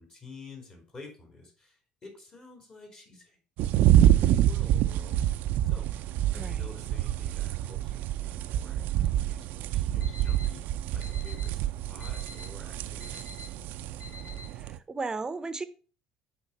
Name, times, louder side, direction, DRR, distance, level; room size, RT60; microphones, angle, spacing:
voice 1, 0.0-5.9 6.3-13.2, left 3 dB, 35° left, 1 dB, 3.1 m, -50 dB
sound 1, 3.6-14.8, right 12 dB, 70° right, 0.5 m, -27 dB
voice 2, 6.3-6.7 14.5-15.7, right 3 dB, 20° right, 12 dB, 0.7 m, -35 dB
Alarm, 9.8-14.8, left 3 dB, 70° left, 3.4 m, -48 dB
8.3 x 3.8 x 5.4 m, 0.39 s
supercardioid pair, 85°, 3 cm